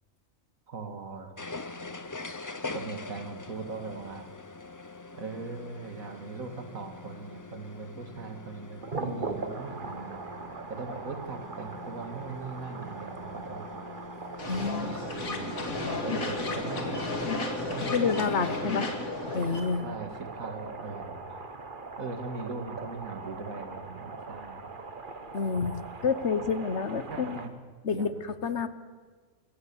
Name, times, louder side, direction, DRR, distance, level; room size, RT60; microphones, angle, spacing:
voice 1, 0.7-1.4 2.7-4.3 5.1-10.2 10.7-13.8 14.8-15.7 16.0-17.0 17.7-18.9 19.8-21.4 22.0-24.7 27.1-27.5 27.9-28.2, right 4 dB, 80° right, 6 dB, 2.5 m, -40 dB
sound 1, 1.4-18.9, left 3 dB, 20° left, 0.5 m, -44 dB
sound 2, 8.8-27.5, right 3 dB, 40° right, 1.5 m, -41 dB
sound 3, 14.4-19.6, left 2 dB, 85° left, 2.6 m, -33 dB
voice 2, 14.5-14.9 17.9-18.9 19.3-19.9 25.3-25.8 26.0-27.4 27.8-28.7, left 5 dB, 55° left, 12 dB, 1.3 m, -28 dB
25.5 x 15.0 x 7.1 m, 1.5 s
omnidirectional pair, 1.4 m